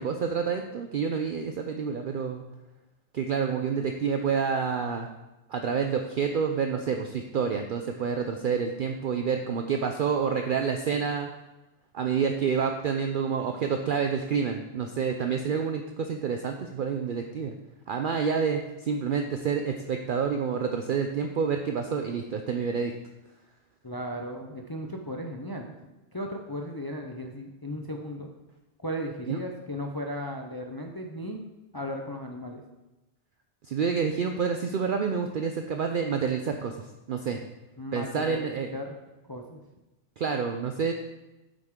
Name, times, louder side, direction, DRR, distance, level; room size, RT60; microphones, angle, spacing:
voice 1, 0.0-2.4 3.1-5.1 5.5-11.3 11.9-17.5 17.9-22.9 29.3-29.4 33.7-37.4 37.9-38.7 40.2-40.9, right 6 dB, 55° right, 5 dB, 0.7 m, -28 dB
voice 2, 23.8-25.7 26.1-28.3 28.8-31.4 31.7-32.6 37.8-38.9 39.2-39.6, equal, 25° left, 2 dB, 0.6 m, -36 dB
9.0 x 8.0 x 3.7 m, 1.0 s
omnidirectional pair, 1.2 m